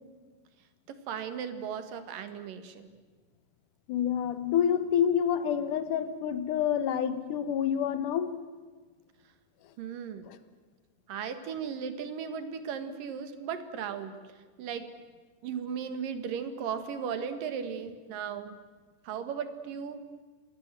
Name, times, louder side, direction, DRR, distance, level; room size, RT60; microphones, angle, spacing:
voice 1, 0.9-2.9 9.8-10.2 11.1-14.2 14.6-14.9 15.4-18.6 19.0-20.0, right 7 dB, 85° right, 10 dB, 3.3 m, -36 dB
voice 2, 3.9-8.4 10.3-10.4, left 9 dB, 75° left, 12 dB, 2.7 m, -28 dB
28.5 x 21.5 x 7.5 m, 1.4 s
omnidirectional pair, 3.8 m